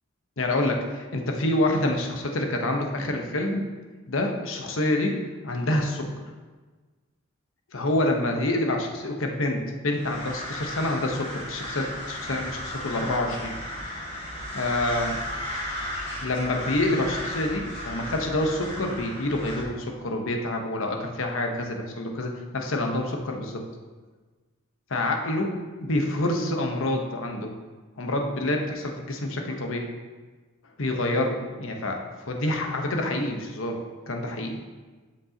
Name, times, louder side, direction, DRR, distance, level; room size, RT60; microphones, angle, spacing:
voice 1, 0.4-3.7 4.1-6.2 7.7-13.5 14.5-15.2 16.2-23.6 24.9-27.5 28.0-29.9 30.8-32.0 32.3-33.8 34.1-34.6, left 1 dB, 75° left, 2 dB, 1.0 m, -27 dB
sound 1, 9.9-19.6, equal, 25° left, 2.0 m, -35 dB
13.0 x 5.3 x 2.9 m, 1.3 s
head